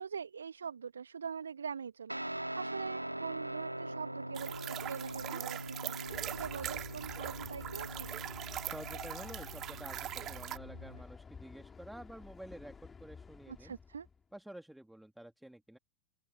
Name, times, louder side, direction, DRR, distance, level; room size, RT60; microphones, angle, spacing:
voice 1, 0.0-8.1 13.5-14.1, right 6 dB, 70° right, 1.8 m, -43 dB
Guitar, 2.1-11.0, right 1 dB, 85° right, 2.9 m, -42 dB
sound 1, 4.3-10.6, right 12 dB, 30° right, 2.0 m, -42 dB
Train, 6.1-14.2, left 5 dB, 15° left, 3.7 m, -52 dB
voice 2, 8.6-13.8 14.3-15.8, right 1 dB, 5° right, 2.8 m, -50 dB
figure-of-eight pair, 90°, 0 cm